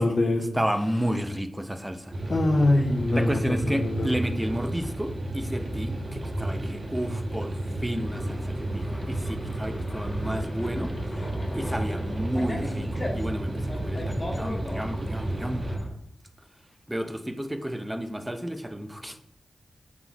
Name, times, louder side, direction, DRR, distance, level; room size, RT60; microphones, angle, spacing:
voice 1, 0.0-0.5 2.3-4.1, left 2 dB, 60° left, -1 dB, 0.6 m, -23 dB
voice 2, 0.5-2.1 3.1-15.7 16.9-19.2, equal, 10° right, 7 dB, 0.5 m, -32 dB
sound 1, 2.1-15.8, right 1 dB, 50° right, 0.9 m, -32 dB
sound 2, 8.1-15.9, equal, 30° left, 1.1 m, -36 dB
5.9 x 3.6 x 2.3 m, 0.74 s
cardioid pair, 65°, 0 cm